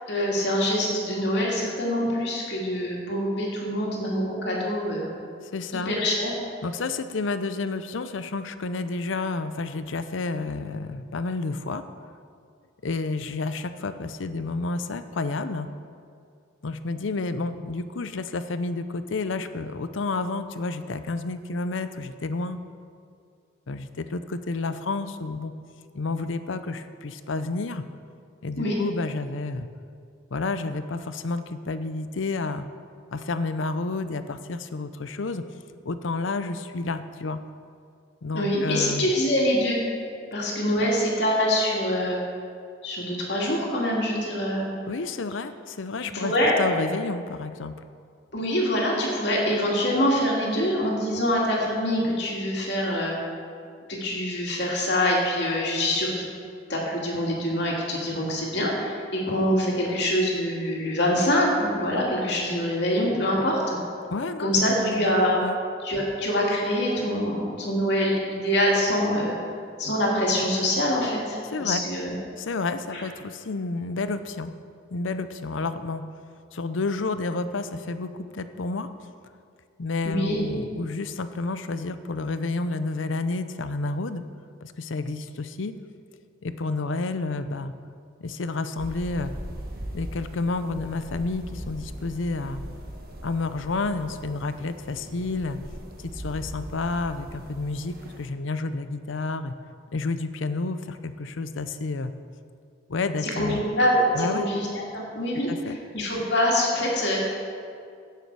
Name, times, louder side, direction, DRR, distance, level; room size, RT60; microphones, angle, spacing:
voice 1, 0.1-5.1 5.7-6.3 28.6-28.7 38.3-39.8 40.3-42.2 42.8-44.7 46.0-46.6 48.3-53.2 53.9-56.3 56.7-63.8 64.4-65.4 65.8-69.4 69.8-72.2 72.9-73.0 80.1-80.4 103.2-107.3, equal, 65° left, -3 dB, 2.4 m, -25 dB
voice 2, 5.5-6.0 6.6-11.8 12.8-15.7 16.6-22.6 23.7-25.5 25.9-27.8 28.4-29.7 30.3-32.7 33.1-35.4 35.8-37.4 38.2-39.1 44.9-46.3 46.6-47.8 64.1-65.2 65.4-65.6 71.5-71.8 72.4-74.5 74.9-76.1 76.5-78.9 79.8-84.2 84.6-85.7 86.4-87.7 88.2-89.3 89.9-92.6 93.2-95.6 96.0-99.5 99.9-102.1 102.9-103.6 104.1-104.5 105.5-105.8, left 3 dB, 85° left, 11 dB, 0.6 m, -30 dB
sound 1, 88.8-98.3, right 1 dB, 50° right, 1.3 m, -40 dB
16.0 x 6.8 x 4.7 m, 2.3 s
head